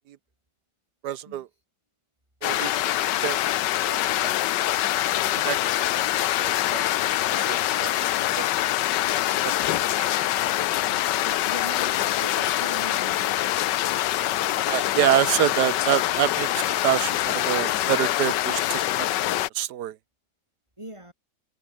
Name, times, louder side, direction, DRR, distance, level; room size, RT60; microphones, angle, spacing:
voice 1, 1.0-1.5 2.4-2.8 3.2-3.4 3.9-4.3 5.4-5.6 6.4-6.8 7.3-8.0 8.4-8.5 9.4-9.6 14.7-19.1 19.5-20.0, right 11 dB, 75° right, 1.3 m, -26 dB
sound 1, 2.4-19.5, left 14 dB, 90° left, 1.4 m, -24 dB
voice 2, 10.8-13.4 20.8-21.1, right 1 dB, 15° right, 6.3 m, -41 dB
omnidirectional pair, 1.9 m